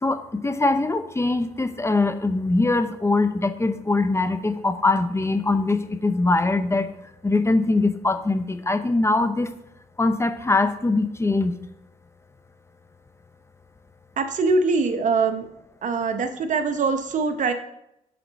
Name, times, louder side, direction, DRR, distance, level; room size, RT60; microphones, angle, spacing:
voice 1, 0.0-6.9 7.2-9.5 10.0-11.6, left 2 dB, 20° left, 9 dB, 0.7 m, -22 dB
voice 2, 14.2-15.5 15.8-17.5, right 4 dB, 60° right, 8 dB, 0.8 m, -23 dB
7.6 x 3.8 x 5.7 m, 0.81 s
cardioid pair, 70°, 14 cm